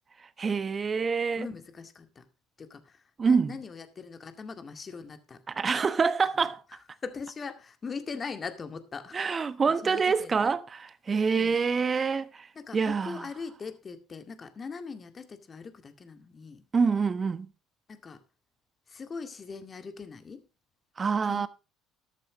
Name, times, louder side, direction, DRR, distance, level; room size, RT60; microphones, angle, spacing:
voice 1, 0.4-1.5 3.2-3.5 5.6-6.6 9.1-12.5 12.7-13.2 16.7-17.5 21.0-21.5, right 5 dB, 30° right, 1.1 m, -26 dB
voice 2, 1.3-2.3 2.6-5.4 6.3-10.5 11.3-11.5 12.5-16.7 17.9-18.2 18.9-20.5 21.2-21.5, left 5 dB, 30° left, 2.1 m, -41 dB
13.0 x 13.0 x 3.1 m
figure-of-eight pair, 55°, 0 cm